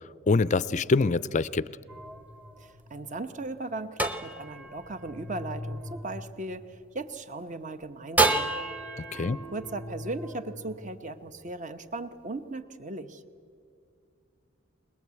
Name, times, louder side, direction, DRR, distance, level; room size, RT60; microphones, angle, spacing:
voice 1, 0.3-1.7 9.1-9.4, left 3 dB, 40° left, 17 dB, 0.5 m, -24 dB
sound 1, 1.9-7.2 8.2-11.5, right 2 dB, 10° right, 0.9 m, -33 dB
voice 2, 2.6-8.5 9.1-13.2, right 2 dB, 40° right, 9 dB, 1.0 m, -37 dB
21.5 x 21.0 x 8.4 m, 2.3 s
head